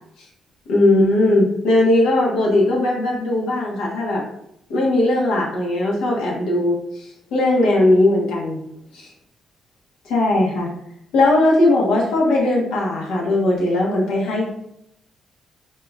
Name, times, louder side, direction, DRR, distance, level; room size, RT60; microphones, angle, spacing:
voice 1, 0.7-4.2 4.7-8.6 8.9-9.1 10.0-10.7 11.1-14.5, left 2 dB, 90° left, -3 dB, 1.2 m, -18 dB
5.3 x 2.8 x 2.4 m, 0.76 s
cardioid pair, 90°, 0 cm